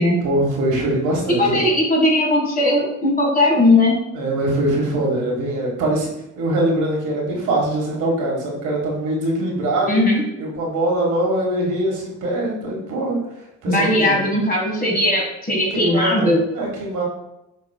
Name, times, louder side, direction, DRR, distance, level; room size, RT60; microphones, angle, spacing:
voice 1, 0.2-1.6 4.1-6.1 6.4-10.0 10.4-13.2 13.6-14.2 15.7-17.0, right 1 dB, 80° right, -2 dB, 1.5 m, -22 dB
voice 2, 1.4-4.0 9.9-10.2 13.7-16.4, left 1 dB, 30° left, -1 dB, 1.7 m, -18 dB
5.7 x 4.1 x 2.2 m, 0.89 s
cardioid pair, 90°, 30 cm